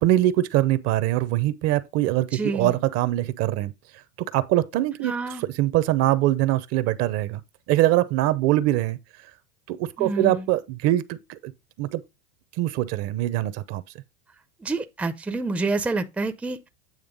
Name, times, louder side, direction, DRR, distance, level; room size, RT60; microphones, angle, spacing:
voice 1, 0.0-3.7 4.3-5.1 5.4-7.4 7.7-9.0 9.7-11.5 11.8-12.0 12.6-13.8, right 15 dB, 45° right, 0.7 m, -23 dB
voice 2, 2.3-2.7 5.0-5.4 10.0-10.4 14.6-16.7, right 3 dB, 5° right, 0.5 m, -28 dB
8.9 x 3.2 x 5.2 m
supercardioid pair, 125°, 34 cm